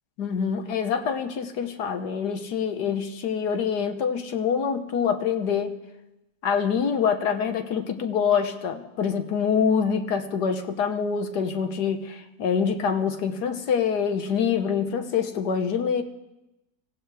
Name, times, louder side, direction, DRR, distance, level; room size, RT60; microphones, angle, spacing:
voice 1, 0.2-5.8 6.4-16.0, left 6 dB, 70° left, 7 dB, 1.6 m, -25 dB
24.5 x 16.0 x 3.4 m, 0.96 s
omnidirectional pair, 1.9 m